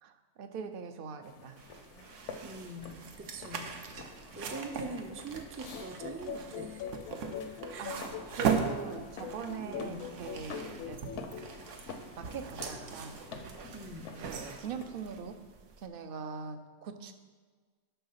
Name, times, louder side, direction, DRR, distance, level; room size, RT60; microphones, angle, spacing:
voice 1, 0.0-1.6 7.8-11.0 11.4-11.5 11.8-13.2 14.3-15.4 15.8-17.1, right 6 dB, 55° right, 8 dB, 0.7 m, -42 dB
sound 1, 1.2-14.8, left 4 dB, 75° left, 1.1 m, -49 dB
sound 2, 1.6-15.9, right 6 dB, 90° right, 1.1 m, -39 dB
voice 2, 2.4-3.7 4.3-6.9 7.7-8.0 9.6-10.0 13.7-14.1, right 2 dB, 20° right, 4 dB, 0.3 m, -43 dB
sound 3, 5.7-11.6, left 8 dB, 60° left, 0.8 m, -43 dB
11.5 x 3.8 x 5.7 m, 1.5 s
omnidirectional pair, 1.2 m